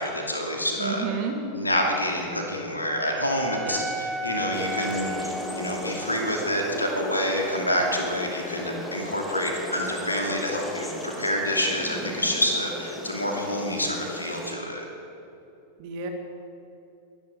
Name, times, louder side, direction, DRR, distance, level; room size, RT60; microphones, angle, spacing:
voice 1, 0.0-1.1 1.5-14.8, left 1 dB, 80° left, 1 dB, 2.6 m, -27 dB
voice 2, 0.8-1.4 3.6-3.8 15.8-16.1, right 6 dB, 45° right, 4 dB, 2.2 m, -30 dB
Wind instrument woodwind instrument, 2.3-6.5, equal, 10° right, 0.9 m, -35 dB
sound 1, 4.5-14.5, left 1 dB, 5° left, 2.0 m, -36 dB
22.0 x 10.5 x 5.1 m, 2.9 s
figure-of-eight pair, 90°, 0 cm